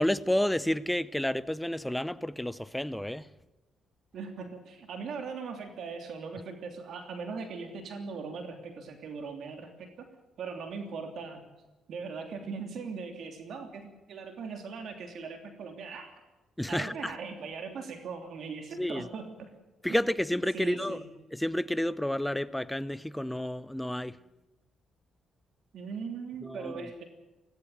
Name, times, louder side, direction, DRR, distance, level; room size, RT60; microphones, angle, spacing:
voice 1, 0.0-3.3 16.6-17.1 18.8-19.1 19.8-21.0 21.3-24.2 26.4-26.7, left 1 dB, 5° left, 0.7 m, -30 dB
voice 2, 4.1-10.1 10.4-11.4 11.9-16.1 16.7-19.4 20.5-21.1 25.7-27.0, right 5 dB, 65° right, 3.1 m, -39 dB
17.5 x 17.5 x 9.3 m
cardioid pair, 90°, 0 cm